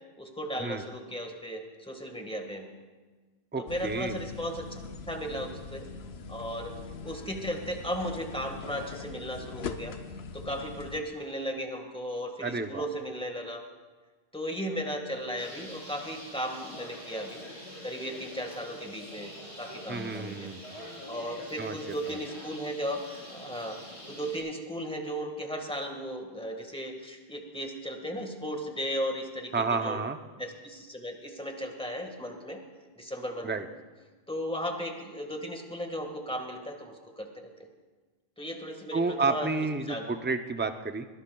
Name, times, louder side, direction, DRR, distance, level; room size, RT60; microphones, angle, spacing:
voice 1, 0.2-2.7 3.6-4.8 5.1-5.9 6.3-6.7 7.0-9.9 10.3-13.6 14.3-17.4 17.8-20.5 21.1-23.0 23.3-23.8 24.1-30.0 30.4-32.6 32.9-33.7 34.3-37.5 38.4-40.1, equal, 5° left, 3 dB, 1.6 m, -36 dB
voice 2, 3.5-4.3 12.4-12.9 19.9-20.6 21.6-21.8 22.1-22.2 29.5-30.2 33.4-33.7 38.9-41.1, right 4 dB, 15° right, 7 dB, 0.4 m, -30 dB
sound 1, 3.7-11.0, left 5 dB, 75° left, 1.0 m, -42 dB
Bird, 15.4-24.4, equal, 40° left, 4.4 m, -45 dB
21.5 x 17.5 x 2.3 m, 1.4 s
omnidirectional pair, 1.1 m